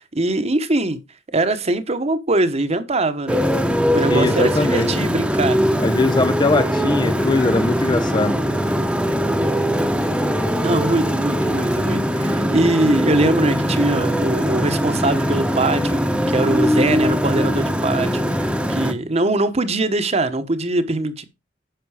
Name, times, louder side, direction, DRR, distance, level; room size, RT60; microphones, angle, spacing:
voice 1, 0.1-1.0 1.3-3.4 3.9-5.6 10.6-16.0 16.3-21.2, right 2 dB, 35° right, 1.2 m, -22 dB
Motorcycle, 3.3-18.9, equal, 5° right, 1.1 m, -21 dB
voice 2, 4.0-4.9 5.8-8.4, left 2 dB, 25° left, 0.6 m, -20 dB
10.5 x 5.9 x 4.9 m
head